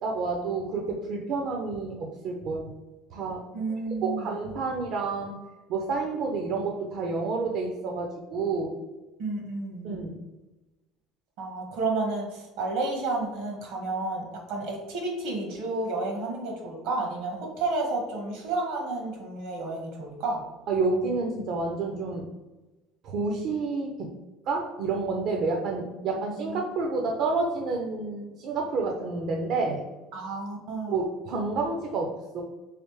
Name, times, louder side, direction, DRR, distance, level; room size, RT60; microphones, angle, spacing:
voice 1, 0.0-2.7 3.1-3.4 4.0-5.4 5.7-8.8 9.8-10.2 20.7-22.3 23.0-24.1 24.5-29.8 30.9-32.4, right 3 dB, 55° right, 1 dB, 0.5 m, -29 dB
voice 2, 3.5-4.3 9.2-9.9 11.4-20.4 26.4-26.6 30.1-31.1, right 3 dB, 80° right, 0 dB, 1.3 m, -31 dB
3.2 x 3.0 x 3.1 m, 1.1 s
cardioid pair, 135°, 0 cm